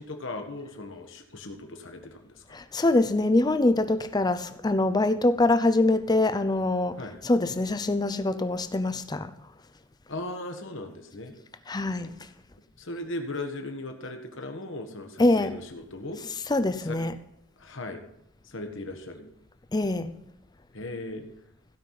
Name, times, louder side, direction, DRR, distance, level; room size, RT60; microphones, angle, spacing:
voice 1, 0.0-2.6 7.0-7.2 10.1-11.3 12.8-16.2 16.8-17.0 17.6-18.0 18.4-19.3 20.7-21.3, left 2 dB, 60° left, 1.5 m, -37 dB
voice 2, 2.5-9.3 11.7-12.1 15.2-15.5 16.5-17.2 19.7-20.1, left 2 dB, 20° left, 0.6 m, -24 dB
16.0 x 5.5 x 5.8 m
head